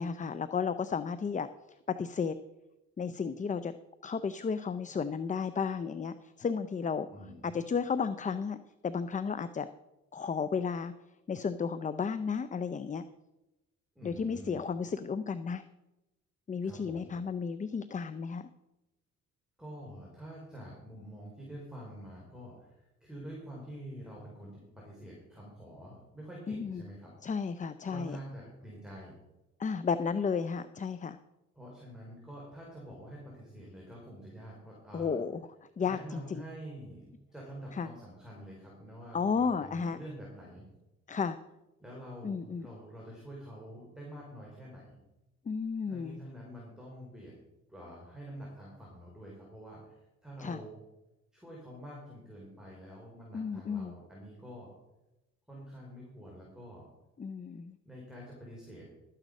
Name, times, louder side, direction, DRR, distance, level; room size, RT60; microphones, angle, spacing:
voice 1, 0.0-1.5 1.9-2.4 3.0-3.7 4.0-7.1 7.4-8.6 8.8-9.7 10.1-10.9 11.3-13.0 14.0-15.6 16.5-18.5 26.5-26.8 27.2-28.2 29.6-31.2 34.9-35.4 35.8-36.4 37.7-37.9 39.1-40.0 41.1-41.4 42.2-42.7 45.5-46.2 50.4-50.6 53.3-53.9 57.2-57.8, left 5 dB, 25° left, 13 dB, 0.5 m, -33 dB
voice 2, 7.1-7.6 13.9-14.6 16.6-17.1 19.6-22.7 23.0-27.1 27.9-29.2 31.5-35.2 35.8-40.7 41.8-45.0 45.9-47.4 47.7-50.8 51.3-54.7 55.5-56.9 57.8-58.9, equal, ahead, -4 dB, 4.7 m, -47 dB
13.0 x 9.1 x 5.3 m, 0.96 s
cardioid pair, 90°, 30 cm